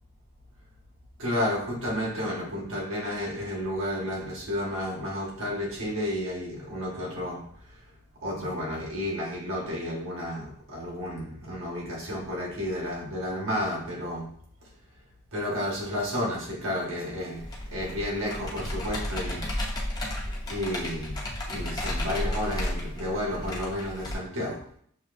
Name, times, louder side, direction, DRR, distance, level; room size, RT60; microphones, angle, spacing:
voice 1, 1.2-7.4 8.2-14.3 15.3-19.5 20.5-21.2 21.5-24.6, left 1 dB, 80° right, -3 dB, 1.7 m, -31 dB
Computer keyboard, 17.4-24.1, left 1 dB, 20° left, 0.8 m, -33 dB
6.5 x 2.9 x 2.7 m, 0.63 s
head